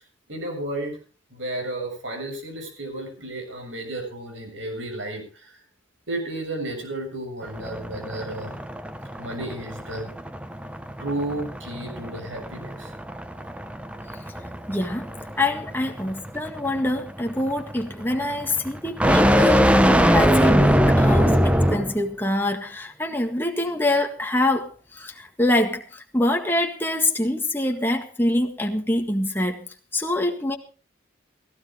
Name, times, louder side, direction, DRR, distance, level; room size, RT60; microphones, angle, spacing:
voice 1, 0.3-1.0 1.3-5.6 6.1-8.6 9.2-10.1 11.0-12.9, right 1 dB, 80° right, 3 dB, 7.0 m, -32 dB
sound 1, 7.4-22.0, equal, 5° right, 0.8 m, -22 dB
voice 2, 14.7-15.1 15.4-29.7 29.9-30.6, left 1 dB, 10° left, 3 dB, 1.7 m, -25 dB
17.0 x 16.0 x 3.7 m, 0.36 s
head